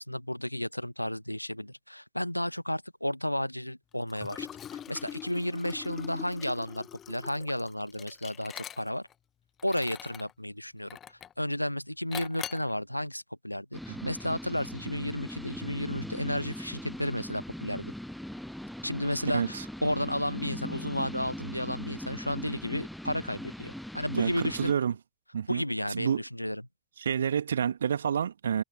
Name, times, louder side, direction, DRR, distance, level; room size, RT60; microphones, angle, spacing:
voice 1, 0.0-4.5 4.9-9.1 9.6-17.9 18.8-24.8 25.5-26.6, left 1 dB, 90° left, 1.1 m, -33 dB
Liquid, 4.1-9.1 9.6-10.3 10.9-11.4 12.1-12.7, left 9 dB, 25° left, 1.2 m, -42 dB
sound 1, 13.7-24.7, equal, ahead, 0.7 m, -40 dB
voice 2, 24.1-24.9 25.3-26.2 27.0-28.6, right 8 dB, 70° right, 1.4 m, -29 dB
figure-of-eight pair, 90°, 0 cm